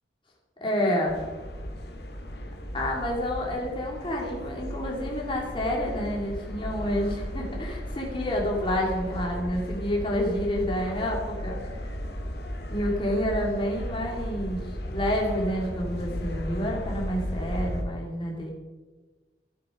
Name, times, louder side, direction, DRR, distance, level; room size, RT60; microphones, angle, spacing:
voice 1, 0.6-1.2 2.7-11.9 12.7-18.5, equal, 30° left, -2 dB, 2.9 m, -29 dB
sound 1, 1.1-17.8, equal, 65° left, 1.7 m, -35 dB
12.5 x 11.5 x 5.1 m, 1.3 s
head